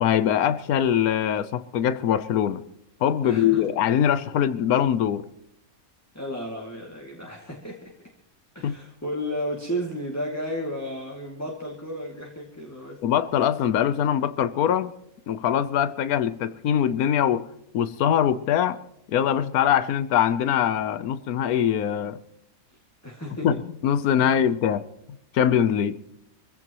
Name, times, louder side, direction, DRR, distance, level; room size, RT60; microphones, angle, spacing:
voice 1, 0.0-2.6 3.0-5.3 8.6-8.8 13.0-14.9 15.3-17.5 17.7-18.8 19.1-22.2 23.4-23.5 23.8-24.8 25.3-26.0, left 9 dB, 80° left, 1.3 m, -22 dB
voice 2, 3.2-3.7 6.1-8.1 8.5-13.0 23.0-23.6 24.2-24.3, equal, 10° left, 2.4 m, -33 dB
24.5 x 16.0 x 3.0 m
omnidirectional pair, 1.6 m